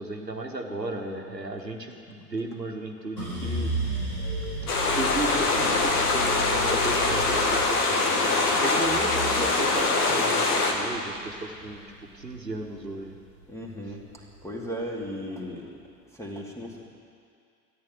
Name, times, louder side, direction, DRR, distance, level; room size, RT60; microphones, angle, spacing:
voice 1, 0.0-3.7 4.7-8.1 8.4-11.8 12.1-13.1, right 2 dB, 90° right, 2 dB, 1.3 m, -35 dB
sound 1, 3.2-13.4 13.8-14.6, right 2 dB, 90° left, 5.2 m, -35 dB
sound 2, 4.7-10.7, left 3 dB, 65° left, 2.0 m, -23 dB
voice 2, 13.5-14.0 14.4-15.7 16.1-16.9, equal, 5° left, -1 dB, 2.4 m, -36 dB
14.0 x 10.0 x 9.1 m, 2.2 s
figure-of-eight pair, 80°, 49 cm